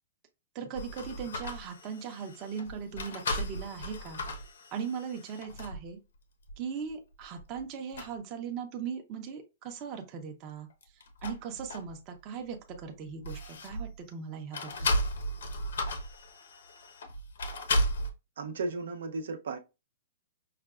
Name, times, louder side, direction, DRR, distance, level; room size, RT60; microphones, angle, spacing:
voice 1, 0.5-4.2 4.7-6.0 6.6-10.7 11.2-15.0, right 6 dB, 25° right, 0.6 m, -39 dB
sound 1, 0.7-5.9 6.5-6.6 7.2-7.6 7.9-8.1 10.7-12.2 12.5-14.0 14.5-18.1, left 1 dB, 90° left, 0.9 m, -35 dB
voice 2, 18.4-19.6, right 3 dB, 75° right, 0.6 m, -35 dB
5.7 x 2.2 x 2.4 m
hypercardioid pair, 175°, 0 cm